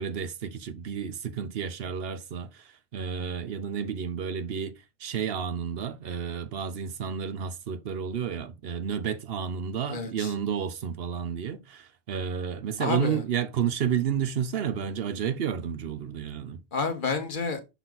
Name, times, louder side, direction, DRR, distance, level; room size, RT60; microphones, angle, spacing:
voice 1, 0.0-4.7 5.0-16.6, right 7 dB, 70° right, 0.9 m, -31 dB
voice 2, 9.9-10.3 12.8-13.2 16.7-17.7, left 4 dB, 55° left, 1.2 m, -30 dB
6.0 x 4.1 x 3.9 m
omnidirectional pair, 1.0 m